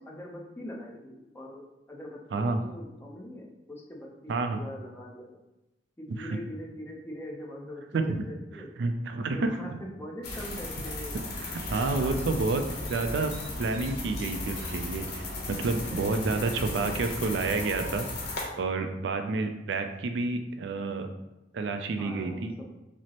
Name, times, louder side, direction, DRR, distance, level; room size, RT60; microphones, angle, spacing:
voice 1, 0.0-5.4 6.0-8.7 9.3-11.2 11.9-12.5 15.9-16.0 22.0-22.6, left 1 dB, 15° left, -2 dB, 0.6 m, -42 dB
voice 2, 2.3-2.6 4.3-4.6 6.1-6.4 7.9-8.2 8.5-9.8 11.4-12.6 12.9-13.3 13.6-18.1 18.6-21.1 21.5-22.5, right 3 dB, 70° right, 7 dB, 0.4 m, -29 dB
sound 1, 10.2-18.4, left 2 dB, 60° left, 0.9 m, -36 dB
5.9 x 2.0 x 2.8 m, 0.96 s
head